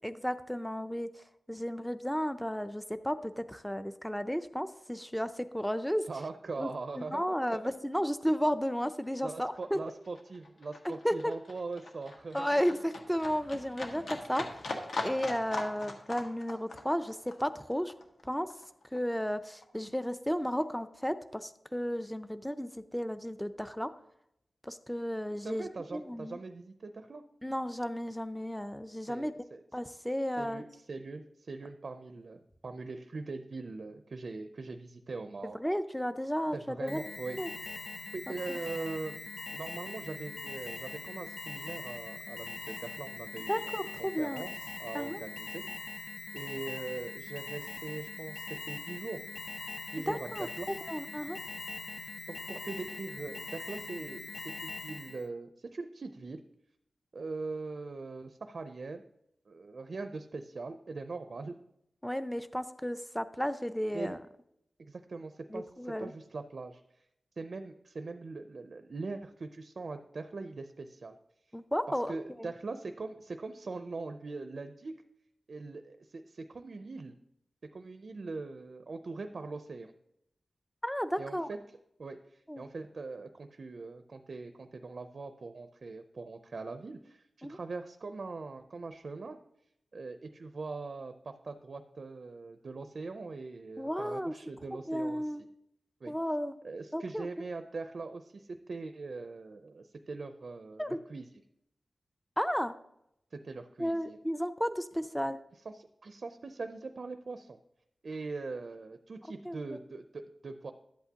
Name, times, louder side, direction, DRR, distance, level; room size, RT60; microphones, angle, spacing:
voice 1, 0.0-1.1 1.5-6.0 6.6-6.7 7.0-9.8 10.8-11.3 12.3-14.4 15.0-17.9 18.2-18.5 18.9-23.9 24.6-26.4 27.4-29.3 29.7-30.6 35.6-37.0 37.4-37.5 38.5-38.6 43.5-44.5 44.9-45.2 50.1-51.4 62.0-64.2 65.5-66.1 71.5-72.5 80.8-81.5 82.5-82.6 87.4-87.6 93.8-94.3 94.9-95.4 96.1-96.5 96.9-97.3 100.8-101.0 102.4-102.7 103.8-105.4 109.4-109.6, equal, 5° left, 11 dB, 0.5 m, -33 dB
voice 2, 6.1-7.2 7.5-7.6 8.3-8.4 9.2-12.7 25.4-27.2 29.1-29.6 30.4-35.6 36.5-37.4 38.1-39.2 39.5-43.7 44.0-45.6 46.3-49.2 49.9-50.7 52.3-56.4 57.1-59.1 59.5-61.6 63.9-64.2 64.8-67.0 67.4-71.2 71.9-74.9 75.5-77.1 77.7-79.9 81.2-81.6 82.0-89.4 89.9-95.4 96.0-96.1 96.6-101.3 103.3-104.2 105.5-107.6 108.0-110.7, right 3 dB, 60° right, 8 dB, 0.5 m, -41 dB
Livestock farm animals working animals, 7.9-8.1 8.3-19.3 19.6-20.6 21.0-21.1, left 2 dB, 80° left, 1.4 m, -41 dB
Alarm, 36.9-55.3, left 3 dB, 50° left, 0.5 m, -42 dB
11.5 x 8.1 x 2.8 m, 0.79 s
wide cardioid pair, 105°, 0 cm